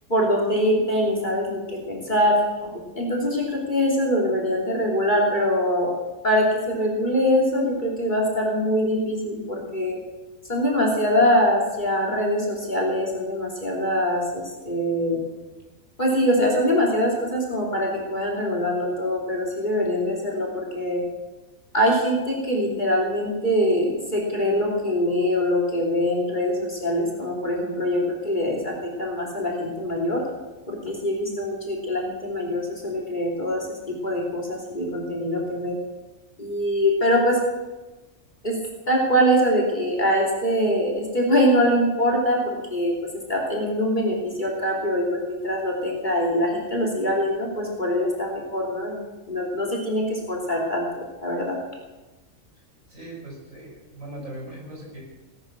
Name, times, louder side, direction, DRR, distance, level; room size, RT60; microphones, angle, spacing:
voice 1, 0.1-2.7 3.0-5.9 6.2-10.0 10.5-15.2 16.0-21.0 21.7-30.2 30.7-35.7 36.4-37.4 38.4-38.6 38.9-42.9 43.3-49.0 49.3-51.6, equal, 35° left, -1 dB, 3.2 m, -23 dB
voice 2, 52.9-55.0, right 1 dB, 70° right, -4 dB, 7.1 m, -39 dB
19.0 x 9.5 x 6.3 m, 1.1 s
omnidirectional pair, 1.4 m